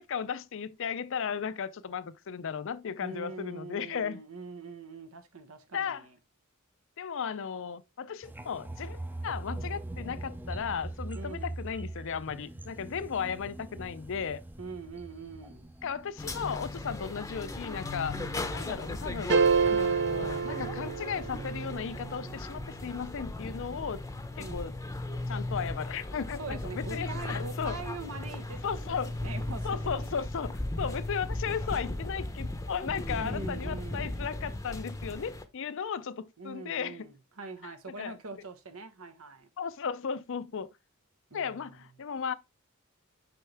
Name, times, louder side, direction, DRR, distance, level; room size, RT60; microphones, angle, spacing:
voice 1, 0.0-4.2 5.7-6.1 7.0-14.4 15.8-18.2 18.5-19.3 19.6-24.0 24.4-24.7 25.3-27.8 28.6-29.1 29.6-37.1 37.9-38.2 39.6-40.7 41.3-42.3, left 6 dB, 65° left, 0.5 m, -35 dB
voice 2, 3.0-6.1 11.1-11.6 14.6-15.7 18.1-18.4 24.4-24.7 26.4-30.1 33.2-34.2 36.4-39.5 41.3-41.7, right 4 dB, 80° right, 1.3 m, -43 dB
sound 1, 8.2-16.1 16.5-16.7, right 2 dB, 10° right, 0.4 m, -41 dB
sound 2, 16.2-35.4, left 2 dB, 15° left, 0.7 m, -37 dB
sound 3, 19.3-21.6, right 5 dB, 55° right, 0.6 m, -27 dB
6.7 x 5.4 x 3.4 m
head